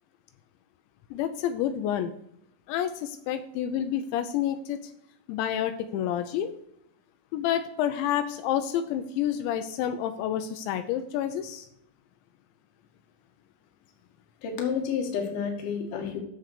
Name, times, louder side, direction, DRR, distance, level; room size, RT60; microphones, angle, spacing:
voice 1, 1.1-2.1 2.7-4.8 5.3-6.5 7.3-11.7, left 10 dB, 90° left, 9 dB, 2.5 m, -29 dB
voice 2, 14.4-16.2, left 6 dB, 55° left, 2 dB, 2.5 m, -30 dB
9.9 x 6.8 x 6.5 m, 0.78 s
omnidirectional pair, 5.9 m